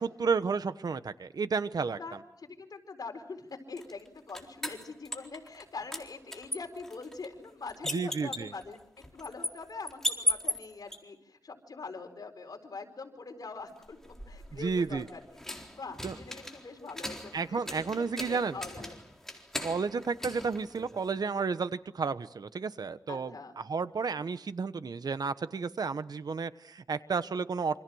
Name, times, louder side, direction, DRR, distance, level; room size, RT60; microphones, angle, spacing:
voice 1, 0.0-2.0 7.9-8.5 14.6-15.1 16.0-16.1 17.3-18.6 19.6-27.8, right 5 dB, 75° right, 13 dB, 1.1 m, -32 dB
voice 2, 1.9-14.0 14.3-15.4 15.7-19.0 23.1-23.6, left 4 dB, 70° left, 4 dB, 4.6 m, -43 dB
sound 1, 3.8-5.6 5.9-11.0 13.8-21.3, left 1 dB, 5° left, 4.0 m, -38 dB
28.0 x 26.5 x 6.4 m, 0.72 s
wide cardioid pair, 85°, 7 cm